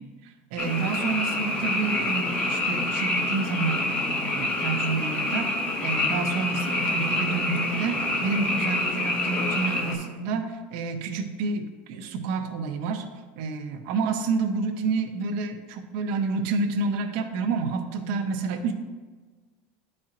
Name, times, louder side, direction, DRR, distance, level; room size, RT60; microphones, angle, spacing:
voice 1, 0.0-13.0 13.4-18.7, right 4 dB, 60° right, 5 dB, 0.8 m, -29 dB
Frog, 0.6-9.9, left 2 dB, 20° left, 0.8 m, -27 dB
11.0 x 4.3 x 2.5 m, 1.3 s
supercardioid pair, 160°, 5 cm